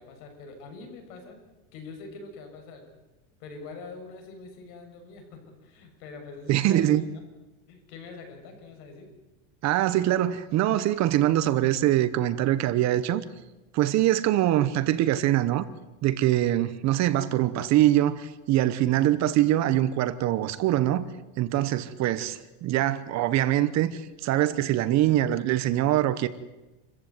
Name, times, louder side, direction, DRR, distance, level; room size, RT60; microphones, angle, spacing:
voice 1, 0.0-1.4 1.7-2.9 3.4-7.2 7.7-9.1, left 4 dB, 70° left, 6.8 m, -44 dB
voice 2, 6.5-7.0 9.6-13.2 13.7-15.7 16.0-21.1 21.4-26.3, right 13 dB, 40° right, 1.0 m, -23 dB
28.0 x 15.0 x 9.4 m
supercardioid pair, 150°, 43 cm